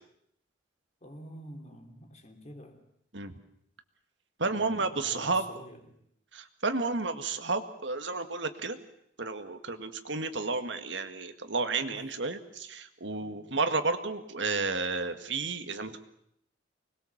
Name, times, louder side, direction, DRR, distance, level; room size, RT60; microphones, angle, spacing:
voice 1, 1.0-2.8 4.4-6.0 11.9-12.1 13.2-13.5, equal, 35° left, 3.0 m, -48 dB
voice 2, 4.4-5.4 6.3-8.8 9.2-16.1, right 3 dB, 75° right, 1.8 m, -32 dB
25.0 x 20.5 x 7.3 m
head